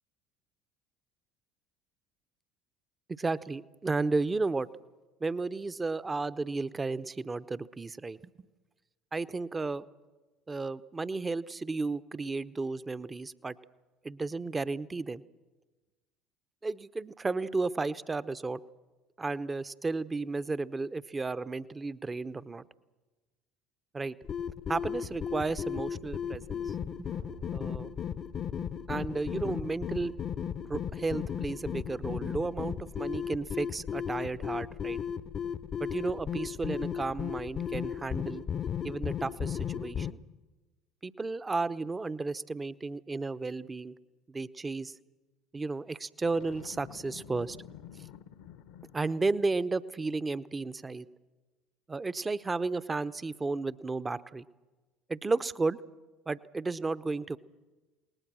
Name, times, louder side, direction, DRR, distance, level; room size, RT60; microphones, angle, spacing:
voice 1, 3.1-4.7 5.2-8.2 9.1-9.9 10.5-13.6 14.0-15.2 16.6-18.6 19.2-22.6 23.9-24.1 24.7-27.1 27.5-27.9 28.9-30.1 30.7-35.0 35.8-38.4 38.8-40.2 41.0-44.0 44.3-44.9 45.5-47.6 48.9-51.1 51.9-54.4 55.1-55.8 56.3-57.4, right 3 dB, 20° right, 15 dB, 0.8 m, -33 dB
sound 1, 24.2-40.1, left 8 dB, 40° left, 0.8 m, -35 dB
sound 2, 27.1-29.4, right 9 dB, 75° right, 3.1 m, -56 dB
Boom, 46.2-49.4, left 10 dB, 65° left, 1.1 m, -49 dB
29.0 x 19.5 x 6.3 m, 1.2 s
figure-of-eight pair, 65°, 0 cm